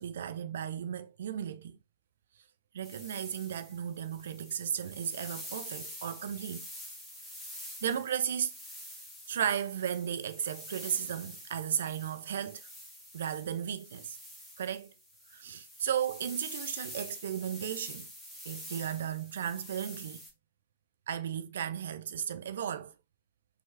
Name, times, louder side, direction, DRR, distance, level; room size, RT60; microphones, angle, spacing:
voice 1, 0.0-1.8 2.7-6.7 7.8-8.5 9.3-12.7 13.1-14.2 14.6-14.9 15.3-18.1 18.5-20.2 21.1-22.9, right 9 dB, 60° right, 0.4 m, -35 dB
sound 1, 2.8-20.3, equal, ahead, 1.2 m, -47 dB
4.4 x 2.8 x 3.1 m
figure-of-eight pair, 105°, 0 cm